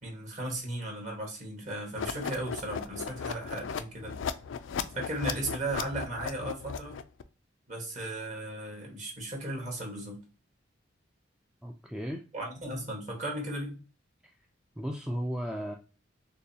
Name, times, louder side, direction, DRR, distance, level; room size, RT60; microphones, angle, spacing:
voice 1, 0.0-4.2 4.9-7.0 7.7-10.2 12.3-13.8, right 1 dB, 40° right, -1 dB, 1.4 m, -36 dB
sound 1, 1.9-7.2, left 6 dB, 75° left, 0.4 m, -36 dB
voice 2, 11.6-12.2 14.8-15.7, equal, 5° right, 1 dB, 0.3 m, -34 dB
6.5 x 2.3 x 2.8 m, 0.33 s
head